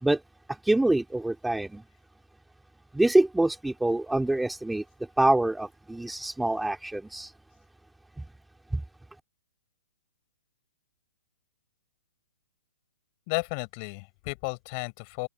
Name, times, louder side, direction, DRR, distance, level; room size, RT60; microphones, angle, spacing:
voice 1, 0.6-1.8 2.9-4.8 5.2-7.3 8.7-8.8, right 2 dB, 5° right, 2.3 m, -25 dB
voice 2, 13.3-15.3, left 33 dB, 35° left, 6.5 m, -33 dB
hypercardioid pair, 145°, 0 cm